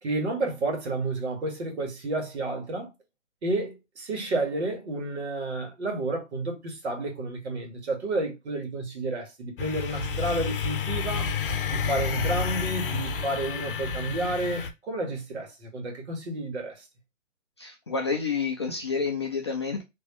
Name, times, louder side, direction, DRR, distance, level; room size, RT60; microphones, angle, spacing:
voice 1, 0.0-2.9 3.4-11.3 11.7-16.8, right 2 dB, 60° right, 1.7 m, -31 dB
sound 1, 9.6-14.7, left 6 dB, 45° left, 0.8 m, -30 dB
voice 2, 17.6-19.8, left 5 dB, 25° left, 0.4 m, -29 dB
3.3 x 3.0 x 3.0 m
hypercardioid pair, 145°, 38 cm